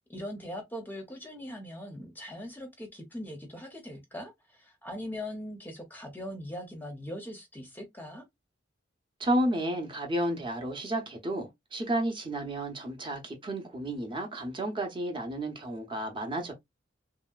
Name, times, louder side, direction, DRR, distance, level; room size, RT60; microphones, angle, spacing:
voice 1, 0.1-8.2, left 1 dB, 10° left, 0.6 m, -41 dB
voice 2, 9.2-16.5, right 1 dB, 25° right, 0.7 m, -32 dB
2.9 x 2.7 x 2.3 m
head